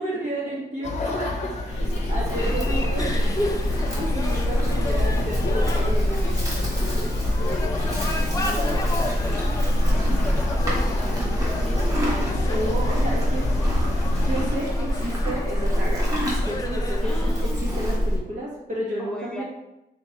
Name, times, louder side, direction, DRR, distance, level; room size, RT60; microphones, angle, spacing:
voice 1, 0.0-7.1 12.5-13.5 14.2-16.1 16.5-19.4, right 1 dB, 50° right, -6 dB, 1.3 m, -31 dB
sound 1, 0.8-14.5, left 3 dB, 50° left, 0.7 m, -31 dB
Livestock farm animals working animals, 1.7-18.2, equal, 20° right, 1.2 m, -24 dB
sound 2, 2.4-17.4, left 2 dB, 20° left, 0.4 m, -35 dB
voice 2, 8.4-9.6 9.9-12.6 17.0-17.7 19.0-19.4, equal, 5° left, -3 dB, 0.9 m, -37 dB
3.5 x 3.0 x 4.4 m, 0.92 s
wide cardioid pair, 160°, 16 cm